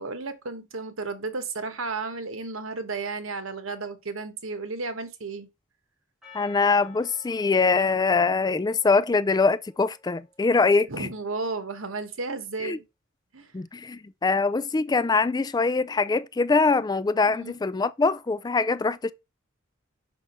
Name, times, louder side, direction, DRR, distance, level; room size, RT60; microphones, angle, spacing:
voice 1, 0.0-5.5 10.9-12.8 13.3-13.5 17.3-17.5, right 3 dB, 75° right, 1.3 m, -33 dB
Percussion, 6.2-10.8, left 5 dB, ahead, 3.8 m, -54 dB
voice 2, 6.3-11.1 12.6-12.8 13.5-19.1, left 4 dB, 20° left, 0.3 m, -23 dB
6.0 x 5.5 x 4.4 m
head